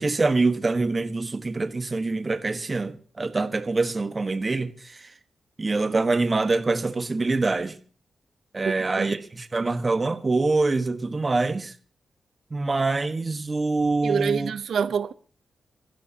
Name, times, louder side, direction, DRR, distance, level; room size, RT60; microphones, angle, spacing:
voice 1, 0.0-5.1 5.6-7.8 8.5-11.7 12.5-14.5, right 3 dB, 30° right, 1.2 m, -25 dB
voice 2, 8.6-9.1 14.0-15.1, right 7 dB, 80° right, 0.7 m, -26 dB
27.5 x 15.5 x 2.8 m
wide cardioid pair, 110°, 0 cm